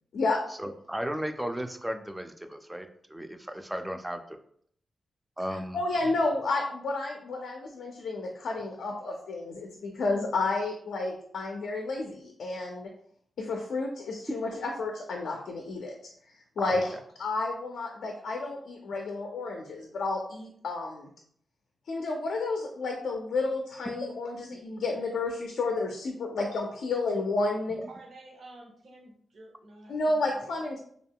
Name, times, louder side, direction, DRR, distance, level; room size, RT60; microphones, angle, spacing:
voice 1, 0.6-4.2 5.4-5.8 16.6-16.8, equal, 10° right, 6 dB, 0.3 m, -35 dB
voice 2, 5.5-12.9 13.4-16.1 16.6-21.1 21.9-27.8 29.9-30.8, left 3 dB, 80° left, 1 dB, 0.4 m, -31 dB
voice 3, 27.9-30.7, right 2 dB, 65° right, 0 dB, 0.7 m, -51 dB
2.3 x 2.1 x 3.5 m, 0.63 s
cardioid pair, 65°, 0 cm